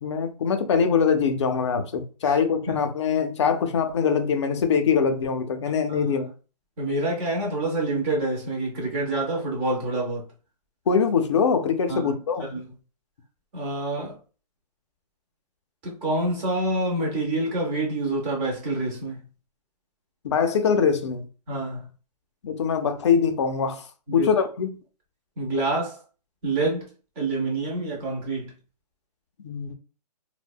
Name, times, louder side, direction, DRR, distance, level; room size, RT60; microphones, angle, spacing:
voice 1, 0.0-6.3 10.9-12.4 20.2-21.2 22.4-23.9 24.1-24.7 29.4-29.7, left 6 dB, 45° left, 0.5 m, -23 dB
voice 2, 6.8-10.3 11.9-12.1 12.4-12.7 13.5-14.2 15.8-19.3 21.5-21.9 24.1-24.5 25.4-26.0 26.4-26.9 27.2-28.6, right 2 dB, 10° right, 0.4 m, -27 dB
2.6 x 2.1 x 2.2 m
hypercardioid pair, 160°, 21 cm